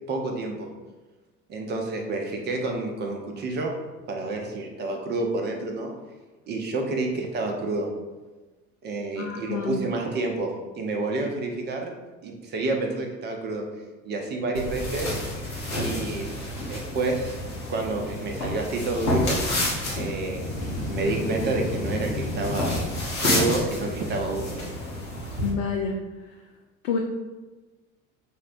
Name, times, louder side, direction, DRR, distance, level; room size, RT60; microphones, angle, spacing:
voice 1, 0.1-0.7 1.5-3.8 4.1-5.9 6.5-7.9 8.8-12.0 12.2-13.6 14.1-15.1 15.7-16.3 16.7-17.4 17.7-19.6 19.9-20.5 20.9-24.6, right 2 dB, 25° right, 2 dB, 0.5 m, -29 dB
voice 2, 9.2-9.8 25.4-26.0 26.2-26.3 26.8-27.0, left 5 dB, 65° left, 1 dB, 0.5 m, -28 dB
sound 1, 14.5-25.5, left 1 dB, 80° left, 0.9 m, -30 dB
sound 2, 20.4-23.6, left 1 dB, 15° left, 1.0 m, -33 dB
4.8 x 2.0 x 2.5 m, 1.2 s
figure-of-eight pair, 65°, 41 cm